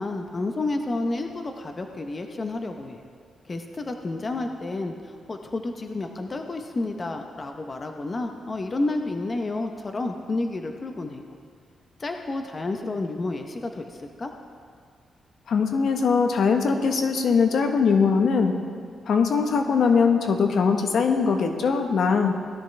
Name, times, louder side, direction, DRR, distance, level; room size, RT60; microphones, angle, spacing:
voice 1, 0.0-3.0 3.5-11.2 12.0-14.3, left 2 dB, 35° left, 4 dB, 0.8 m, -30 dB
voice 2, 15.5-18.5 19.1-22.4, left 5 dB, 70° left, 5 dB, 1.1 m, -21 dB
17.5 x 13.0 x 3.3 m, 2.1 s
cardioid pair, 90°, 0 cm